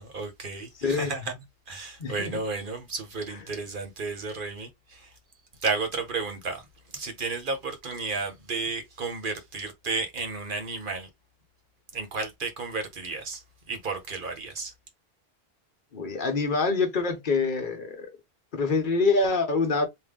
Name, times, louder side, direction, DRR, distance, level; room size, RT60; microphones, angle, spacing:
voice 1, 0.0-1.3 1.7-5.1 5.6-6.6 6.9-11.1 11.9-13.4 13.7-14.7, right 4 dB, 55° right, 1.2 m, -32 dB
voice 2, 0.8-1.1 2.0-2.4 15.9-18.1 18.5-19.9, left 4 dB, 55° left, 1.1 m, -25 dB
3.8 x 2.5 x 3.6 m
omnidirectional pair, 1.1 m